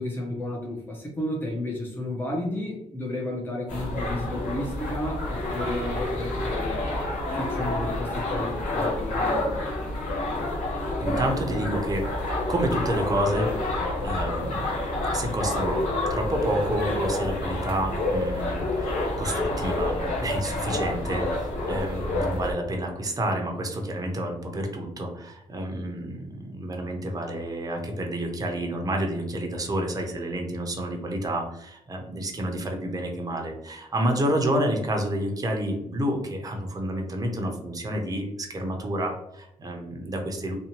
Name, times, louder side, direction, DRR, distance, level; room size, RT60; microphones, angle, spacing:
voice 1, 0.0-7.0 7.3-9.6, left 1 dB, 15° left, -2 dB, 0.7 m, -32 dB
sound 1, 3.7-22.5, left 2 dB, 85° left, 1.2 m, -28 dB
voice 2, 11.0-12.1 12.5-13.5 14.0-14.7 15.1-15.8 16.1-40.5, right 1 dB, 25° right, 2 dB, 0.6 m, -29 dB
2.7 x 2.2 x 2.8 m, 0.80 s
cardioid pair, 95°, 14 cm